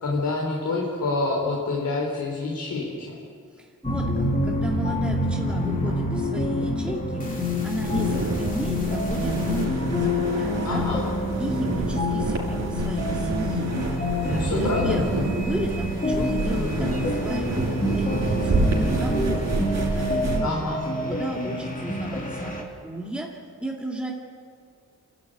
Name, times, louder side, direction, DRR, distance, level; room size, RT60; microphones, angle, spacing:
voice 1, 0.0-3.2 10.6-11.0 14.2-15.3 20.4-20.8, left 3 dB, 60° left, -2 dB, 4.2 m, -27 dB
voice 2, 3.6-11.0 11.4-19.5 19.9-20.6 21.0-24.1, right 1 dB, 5° right, -2 dB, 2.4 m, -33 dB
sound 1, 3.8-22.6, left 2 dB, 25° left, 3.1 m, -27 dB
sound 2, 7.8-20.4, right 3 dB, 50° right, 5.4 m, -28 dB
29.0 x 13.5 x 9.3 m, 2.2 s
wide cardioid pair, 140°, 33 cm